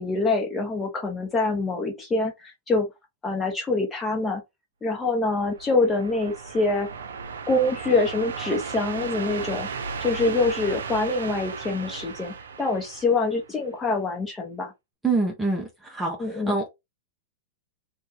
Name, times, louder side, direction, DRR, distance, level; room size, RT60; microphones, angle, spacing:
voice 1, 0.0-2.9 3.2-4.4 4.8-6.9 7.5-9.7 10.0-14.7 16.2-16.5, left 3 dB, 15° left, 1.2 m, -25 dB
sound 1, 5.2-13.7, right 5 dB, 70° right, 0.5 m, -36 dB
voice 2, 15.0-16.7, right 3 dB, 5° right, 0.9 m, -26 dB
2.6 x 2.6 x 3.8 m
figure-of-eight pair, 100°, 0 cm